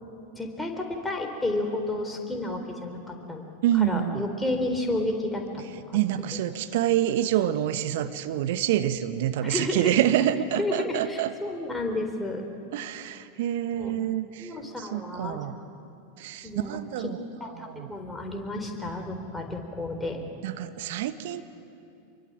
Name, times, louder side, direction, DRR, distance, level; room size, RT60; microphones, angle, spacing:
voice 1, 0.4-3.4 3.7-6.0 9.4-9.9 10.6-12.5 13.7-14.0 14.4-15.4 16.4-16.8 17.4-20.2, left 2 dB, 10° left, 3 dB, 4.1 m, -31 dB
voice 2, 3.6-4.2 5.9-11.3 12.7-15.6 16.2-17.2 17.6-17.9 20.4-21.4, right 11 dB, 55° right, 10 dB, 1.4 m, -27 dB
27.0 x 23.5 x 9.0 m, 2.7 s
figure-of-eight pair, 85°, 0 cm